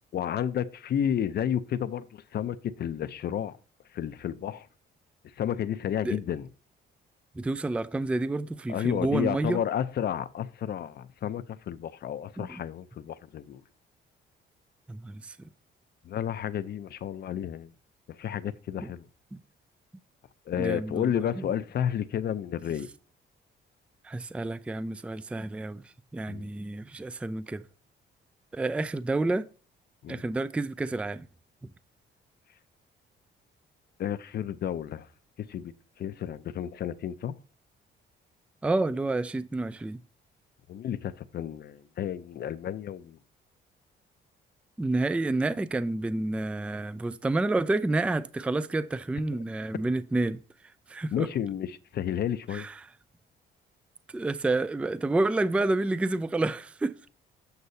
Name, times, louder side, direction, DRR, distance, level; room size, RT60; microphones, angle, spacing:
voice 1, 0.1-3.6 3.9-4.7 5.4-6.5 8.7-13.6 16.0-17.7 18.1-19.0 20.5-22.9 26.3-26.5 30.0-30.2 34.0-35.1 35.4-35.7 36.0-37.3 40.7-43.2 51.1-52.7, left 9 dB, 55° left, 0.5 m, -31 dB
voice 2, 7.4-9.6 12.4-12.6 14.9-15.4 18.8-18.9 19.3-19.4 20.6-21.5 24.0-25.8 26.1-27.6 28.5-29.5 30.1-31.3 38.6-40.0 44.8-50.4 50.9-51.3 52.5-52.9 54.1-57.1, right 2 dB, 5° right, 0.3 m, -29 dB
8.0 x 6.6 x 2.7 m
cardioid pair, 90°, 20 cm